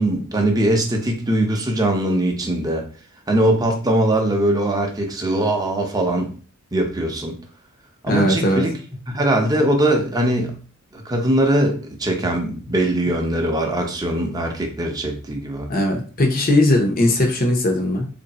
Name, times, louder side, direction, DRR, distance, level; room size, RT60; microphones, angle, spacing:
voice 1, 0.0-2.9 3.3-6.3 6.7-7.4 8.0-8.8 9.1-10.6 10.9-15.7, right 1 dB, 20° right, 2 dB, 0.7 m, -21 dB
voice 2, 8.1-8.6 15.7-18.1, left 1 dB, 40° left, 3 dB, 0.8 m, -18 dB
3.1 x 2.6 x 4.1 m, 0.39 s
head